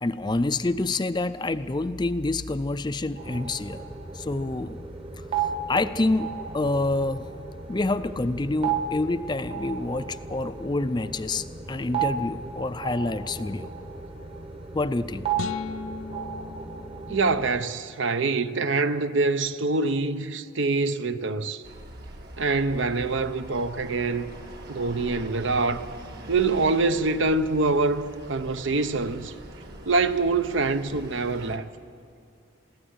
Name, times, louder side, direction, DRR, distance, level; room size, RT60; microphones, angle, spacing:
voice 1, 0.0-3.8 4.1-4.8 5.4-6.3 6.5-7.3 7.7-13.7 14.7-15.3, left 2 dB, 20° left, 0.4 m, -27 dB
sound 1, 3.2-17.6, right 6 dB, 30° right, 1.0 m, -34 dB
sound 2, 15.3-17.7, left 5 dB, 85° left, 0.4 m, -37 dB
voice 2, 17.1-21.6 22.4-24.3 24.7-25.8 26.3-29.3 29.9-31.7, right 3 dB, 65° right, 0.7 m, -25 dB
sound 3, 21.6-31.6, right 1 dB, 50° right, 1.6 m, -43 dB
22.0 x 16.0 x 8.1 m
head